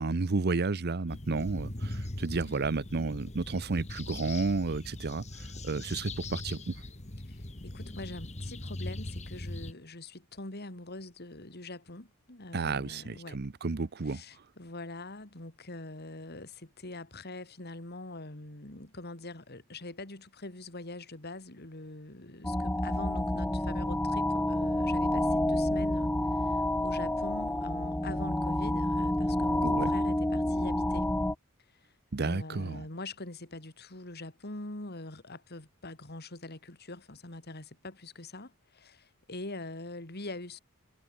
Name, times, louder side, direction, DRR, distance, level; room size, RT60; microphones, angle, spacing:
voice 1, 0.0-6.7 12.5-14.2 29.6-29.9 32.1-32.9, right 3 dB, 50° right, 0.7 m, -32 dB
sound 1, 1.1-9.7, left 1 dB, 35° left, 1.8 m, -40 dB
voice 2, 7.3-13.4 14.1-31.1 32.2-40.6, left 2 dB, 50° left, 3.2 m, -43 dB
sound 2, 22.4-31.3, left 1 dB, 10° left, 0.7 m, -29 dB
head